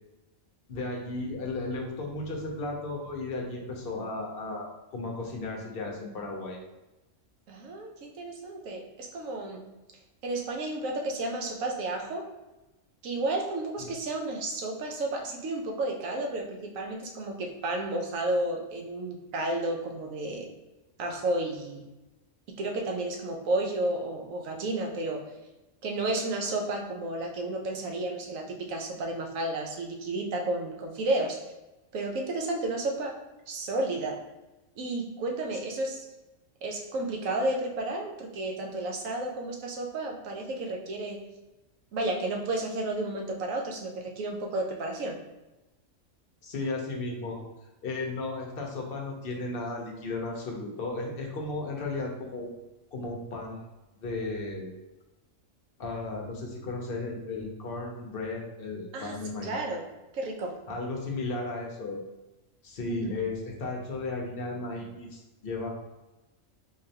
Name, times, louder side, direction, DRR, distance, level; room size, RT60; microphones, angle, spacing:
voice 1, 0.7-6.6 13.8-13.9 46.4-47.5 47.8-52.5 52.9-53.6 54.0-54.7 55.8-59.6 60.7-62.0 62.6-65.7, left 3 dB, 55° left, 0 dB, 0.8 m, -35 dB
voice 2, 7.5-9.7 10.2-12.3 13.0-20.5 21.0-21.8 22.6-25.3 25.8-31.5 31.9-33.2 33.5-34.2 34.8-36.0 36.6-41.2 41.9-45.2 58.9-59.2 59.4-59.9 60.1-60.6 62.9-63.2, right 2 dB, 80° right, 1 dB, 1.1 m, -32 dB
3.8 x 3.2 x 2.7 m, 1.0 s
omnidirectional pair, 1.4 m